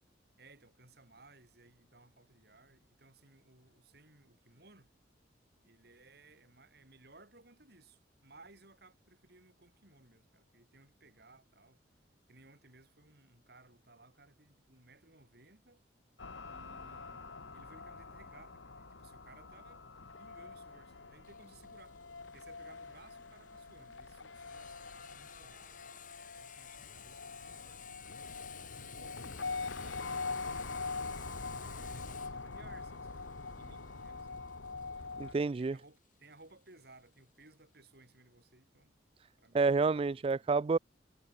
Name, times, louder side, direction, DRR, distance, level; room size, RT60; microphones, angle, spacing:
voice 1, 0.4-4.9 5.6-11.8 12.3-15.8 16.5-19.8 20.2-22.0 22.3-25.7 26.3-27.8 28.6-30.9 31.6-33.2 33.6-34.4 35.2-39.0 39.4-40.0, right 2 dB, 60° right, 7.0 m, -61 dB
sound 1, 16.2-35.3, left 4 dB, 90° left, 1.8 m, -44 dB
Sawing, 21.2-36.7, left 10 dB, 45° left, 3.8 m, -55 dB
voice 2, 35.2-35.8 39.5-40.8, right 4 dB, 30° right, 0.3 m, -29 dB
head